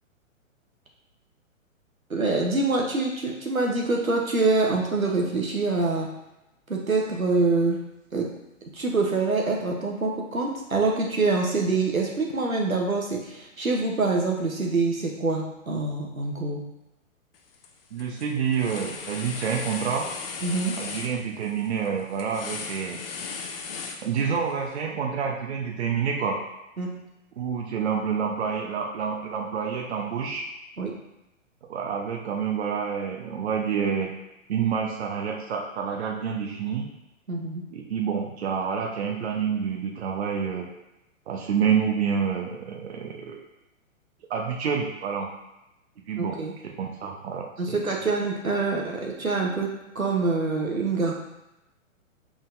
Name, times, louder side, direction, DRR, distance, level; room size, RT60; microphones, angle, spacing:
voice 1, 2.1-6.1 6.7-7.8 8.1-8.3 8.7-16.6 20.4-20.7 26.8-26.9 30.8-30.9 37.3-37.6 46.2-46.5 47.6-49.7 49.9-51.1, right 3 dB, 90° right, 0 dB, 1.0 m, -25 dB
sound 1, 17.3-17.7 18.0-24.5, left 5 dB, 45° left, 0.6 m, -37 dB
voice 2, 17.9-20.1 20.8-23.0 24.0-26.4 27.4-30.5 31.7-34.1 34.5-36.9 37.7-40.7 41.3-43.4 44.3-45.3 46.1-46.4 46.8-47.8, right 7 dB, 50° right, 1 dB, 0.8 m, -28 dB
5.2 x 3.8 x 2.6 m, 0.92 s
figure-of-eight pair, 120°, 41 cm